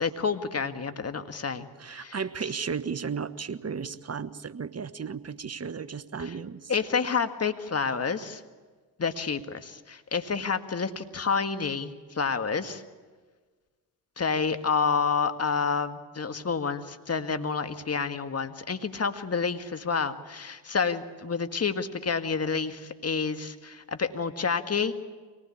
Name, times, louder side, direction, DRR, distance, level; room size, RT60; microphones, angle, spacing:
voice 1, 0.0-1.7 1.9-2.2 6.2-6.3 6.7-8.4 9.0-12.8 14.2-24.9, left 5 dB, 30° left, 8 dB, 1.8 m, -29 dB
voice 2, 1.8-6.7, right 6 dB, 30° right, 14 dB, 1.2 m, -34 dB
24.5 x 19.0 x 8.6 m, 1.4 s
hypercardioid pair, 45°, 46 cm